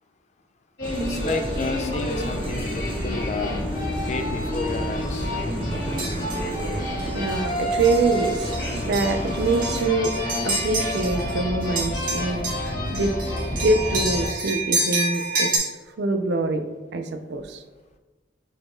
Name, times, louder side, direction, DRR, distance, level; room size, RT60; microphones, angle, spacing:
sound 1, 0.8-14.3, left 1 dB, 55° left, 1.2 m, -28 dB
sound 2, 0.8-9.9, right 1 dB, 30° right, 0.7 m, -36 dB
voice 1, 1.0-3.5 4.1-5.3, left 3 dB, 40° left, 6 dB, 0.4 m, -31 dB
voice 2, 5.4-8.5 8.8-13.2 13.6-15.7 16.0-16.6 16.9-17.6, right 2 dB, 70° right, 7 dB, 0.4 m, -25 dB
sound 3, 6.0-6.5 7.0-7.2 7.8-8.2 8.5-11.4 11.6-15.6, right 2 dB, 50° right, 1.2 m, -28 dB
4.8 x 4.1 x 2.5 m, 1.2 s
head